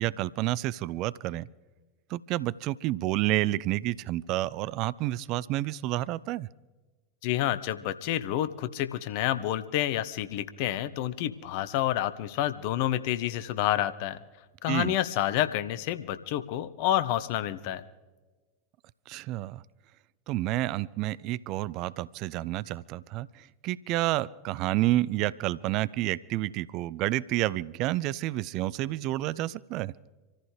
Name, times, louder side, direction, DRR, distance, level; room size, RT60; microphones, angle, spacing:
voice 1, 0.0-1.5 2.1-6.5 14.7-14.9 19.1-19.6 20.3-29.9, right 16 dB, 45° right, 20 dB, 0.4 m, -29 dB
voice 2, 7.2-14.2 14.6-17.8, left 12 dB, 55° left, 13 dB, 0.8 m, -29 dB
26.5 x 14.5 x 3.3 m, 1.3 s
figure-of-eight pair, 85°, 0 cm